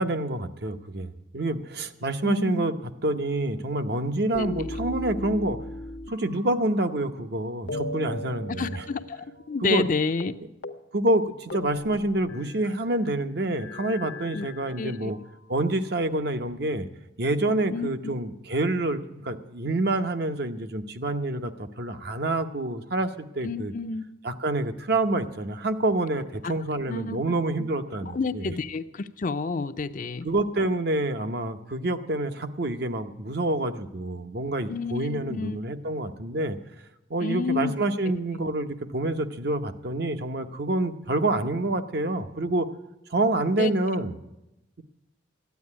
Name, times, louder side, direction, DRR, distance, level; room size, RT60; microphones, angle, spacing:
voice 1, 0.0-2.7 3.0-5.6 6.1-8.8 9.6-9.9 10.9-15.2 15.5-16.9 17.2-23.7 24.2-28.5 30.2-36.6 37.1-42.7 43.1-44.2, right 2 dB, 55° right, 8 dB, 0.9 m, -27 dB
voice 2, 2.2-2.7 8.6-10.3 14.3-14.5 14.8-15.1 17.7-17.9 23.4-24.0 26.9-27.2 27.6-27.7 28.0-30.3 34.7-35.6 37.2-37.7 43.6-43.7, left 4 dB, 45° left, 11 dB, 0.5 m, -29 dB
sound 1, 4.3-7.3 7.7-9.5 9.8-9.9 10.2-10.4 10.6-10.8 11.1-12.8 13.5-15.1 15.8-16.8, left 1 dB, 70° left, 0.8 m, -38 dB
13.0 x 9.5 x 9.6 m, 0.91 s
head